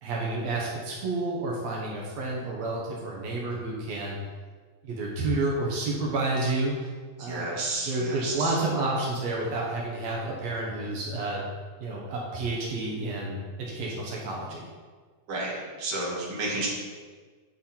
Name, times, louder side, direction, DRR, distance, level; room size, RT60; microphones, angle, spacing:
voice 1, 0.0-4.2 4.8-6.7 7.2-7.5 7.9-11.4 11.8-14.7, right 2 dB, 85° right, -3 dB, 1.5 m, -30 dB
voice 2, 7.2-8.5 15.3-16.7, right 2 dB, 45° right, -4 dB, 2.0 m, -32 dB
9.3 x 6.3 x 4.4 m, 1.5 s
omnidirectional pair, 5.0 m